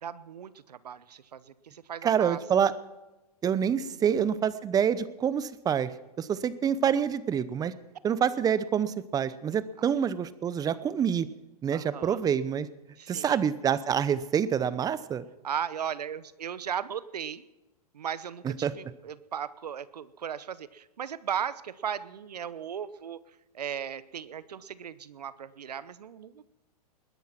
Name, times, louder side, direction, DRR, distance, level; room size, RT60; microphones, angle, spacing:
voice 1, 0.0-2.4 3.8-4.0 9.8-9.9 11.7-12.2 13.0-13.4 15.4-17.4 17.9-23.2 23.5-26.5, right 8 dB, 85° right, 17 dB, 0.9 m, -37 dB
voice 2, 2.0-2.7 3.4-5.9 6.2-7.7 8.0-11.3 11.6-12.7 13.1-15.2 18.4-18.7, right 8 dB, 20° right, 17 dB, 0.8 m, -27 dB
20.5 x 10.5 x 5.9 m, 1.0 s
hypercardioid pair, 120°, 20 cm